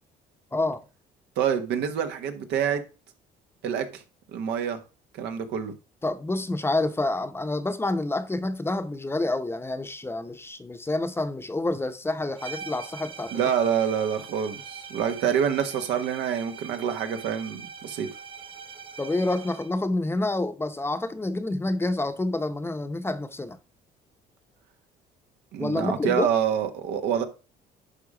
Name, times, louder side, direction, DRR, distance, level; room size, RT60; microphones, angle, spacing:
voice 1, 0.5-0.8 6.0-13.3 19.0-23.6 25.6-26.3, left 2 dB, 15° left, 0.8 m, -28 dB
voice 2, 1.4-2.8 3.6-4.0 4.3-4.8 5.1-5.7 13.3-18.1 25.5-27.2, right 8 dB, 85° right, 1.4 m, -26 dB
sound 1, 12.4-19.8, right 6 dB, 30° right, 1.2 m, -42 dB
11.0 x 3.8 x 4.9 m
cardioid pair, 110°, 17 cm